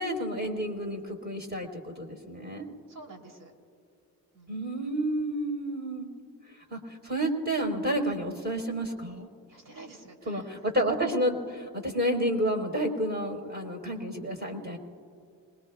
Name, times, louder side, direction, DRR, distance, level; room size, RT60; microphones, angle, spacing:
voice 1, 0.0-2.7 4.5-6.1 6.5-9.3 10.2-14.8, right 1 dB, 20° right, 2 dB, 4.2 m, -30 dB
voice 2, 2.9-3.5 4.3-4.5 9.5-10.5, right 2 dB, 50° right, 3 dB, 3.4 m, -49 dB
27.0 x 21.5 x 2.4 m, 2.5 s
hypercardioid pair, 45°, 43 cm